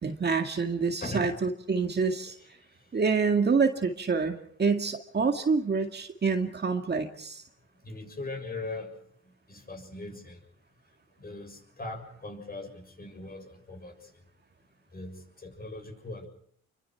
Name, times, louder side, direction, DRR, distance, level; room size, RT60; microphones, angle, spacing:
voice 1, 0.0-2.4 2.9-7.4, right 5 dB, 35° right, 5 dB, 2.1 m, -27 dB
voice 2, 1.0-1.3 2.2-3.0 7.8-8.9 9.5-10.4 11.2-14.2 14.9-16.3, left 2 dB, 30° left, 5 dB, 7.2 m, -40 dB
28.5 x 24.0 x 4.7 m, 0.62 s
cardioid pair, 90°, 30 cm